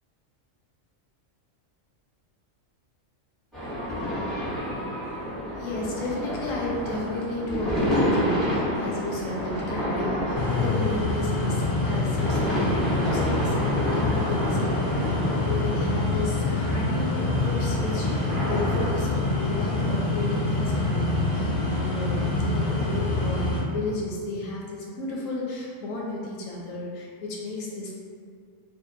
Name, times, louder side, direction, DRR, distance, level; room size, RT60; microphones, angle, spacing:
sound 1, 3.5-18.9, equal, ahead, 0.6 m, -30 dB
voice 1, 5.6-27.9, left 2 dB, 85° left, -3 dB, 1.0 m, -33 dB
sound 2, 10.3-23.6, left 2 dB, 65° left, 0.4 m, -26 dB
2.7 x 2.5 x 2.4 m, 2.1 s
omnidirectional pair, 1.3 m